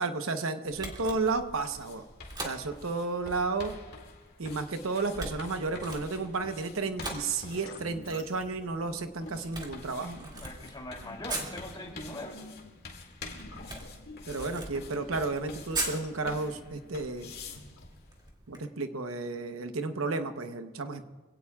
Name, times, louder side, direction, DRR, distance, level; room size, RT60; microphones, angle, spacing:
voice 1, 0.0-2.0 2.4-3.7 4.4-10.3 14.3-17.3 18.5-21.1, right 3 dB, 75° right, 8 dB, 0.9 m, -32 dB
sound 1, 0.6-18.3, left 3 dB, 50° left, 2.2 m, -48 dB
Camera, 0.7-18.6, right 2 dB, 20° right, 2.3 m, -43 dB
sound 2, 6.8-17.8, left 2 dB, 75° left, 2.8 m, -51 dB
voice 2, 10.4-12.4, left 1 dB, 20° left, 1 dB, 2.8 m, -41 dB
26.0 x 17.5 x 2.4 m, 1.3 s
head